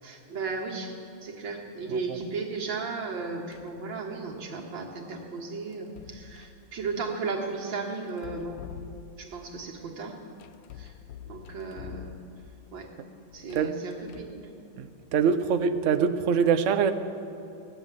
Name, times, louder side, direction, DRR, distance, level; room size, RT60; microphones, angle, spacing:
voice 1, 0.0-8.6 9.2-10.2 10.7-10.9 11.2-12.2 12.7-12.9 13.3-14.5, right 4 dB, 85° right, 0 dB, 2.4 m, -35 dB
sound 1, 3.5-3.8 5.7-6.6 8.1-9.4 10.4-12.6 13.3-14.5, left 11 dB, 75° left, 0.9 m, -46 dB
voice 2, 14.8-16.9, right 6 dB, 60° right, 9 dB, 0.8 m, -24 dB
16.0 x 10.0 x 7.6 m, 2.7 s
omnidirectional pair, 2.0 m